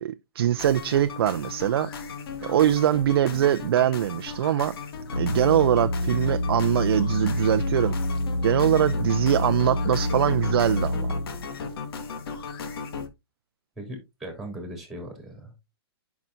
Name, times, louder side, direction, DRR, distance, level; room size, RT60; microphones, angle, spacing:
voice 1, 0.0-1.9 2.4-4.8 5.2-7.9 8.4-11.1, right 11 dB, 65° right, 0.5 m, -23 dB
sound 1, 0.5-13.1, left 5 dB, 65° left, 1.8 m, -37 dB
sound 2, 5.1-11.6, left 1 dB, 85° left, 1.3 m, -27 dB
voice 2, 13.8-15.5, right 1 dB, ahead, 3.2 m, -38 dB
10.5 x 5.9 x 2.5 m
hypercardioid pair, 145°, 13 cm